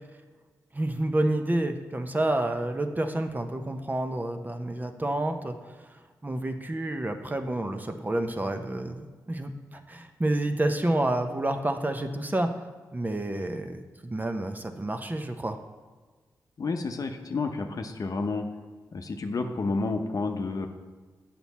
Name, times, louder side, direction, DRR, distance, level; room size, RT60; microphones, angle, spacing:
voice 1, 0.7-5.6 5.9-12.5 12.9-15.6, right 1 dB, 25° right, 6 dB, 0.7 m, -29 dB
voice 2, 16.6-18.5 18.9-20.7, left 3 dB, 60° left, 5 dB, 0.7 m, -30 dB
8.0 x 5.9 x 4.1 m, 1.4 s
cardioid pair, 50°, 7 cm